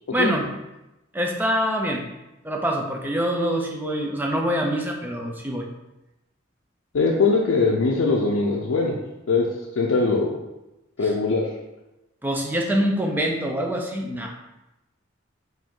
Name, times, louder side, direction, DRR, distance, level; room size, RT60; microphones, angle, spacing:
voice 1, 0.1-0.5 1.1-2.0 2.4-5.7 12.2-14.3, equal, 10° right, 0 dB, 0.5 m, -25 dB
voice 2, 6.9-9.0 9.3-9.5 9.8-10.3 11.0-11.5, left 3 dB, 85° left, -2 dB, 0.5 m, -21 dB
4.9 x 2.6 x 3.7 m, 0.97 s
head